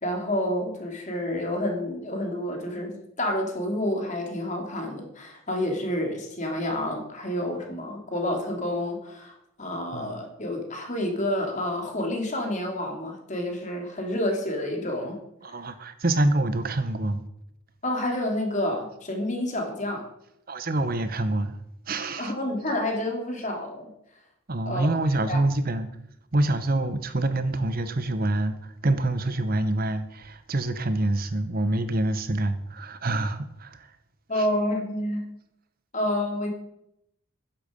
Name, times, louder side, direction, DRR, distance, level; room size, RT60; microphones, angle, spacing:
voice 1, 0.0-15.2 17.8-20.1 22.2-23.9 24.7-24.9 25.3-25.4 34.3-35.3 35.9-36.5, left 1 dB, 35° left, 3.0 m, -29 dB
voice 2, 15.4-17.2 20.5-21.6 21.9-22.3 24.5-25.9 26.3-33.9 34.3-34.5, right 2 dB, 45° right, 0.9 m, -26 dB
13.5 x 10.5 x 5.3 m
head